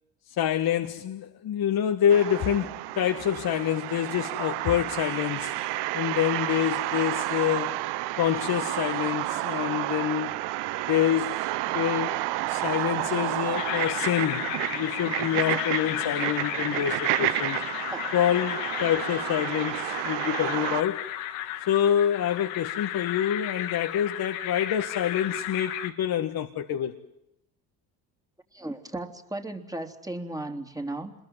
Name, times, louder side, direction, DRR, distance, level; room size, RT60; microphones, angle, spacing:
voice 1, 0.4-5.5 5.9-7.8 8.2-10.3 10.9-11.3 11.7-12.2 12.5-17.6 18.1-21.0 21.7-27.0, left 10 dB, 55° left, 1.8 m, -26 dB
sound 1, 2.1-20.8, right 17 dB, 70° right, 0.9 m, -30 dB
sound 2, 13.6-25.9, left 13 dB, 85° left, 2.2 m, -34 dB
voice 2, 28.5-31.1, right 2 dB, 10° right, 3.3 m, -35 dB
27.0 x 22.0 x 7.4 m
supercardioid pair, 80°, 43 cm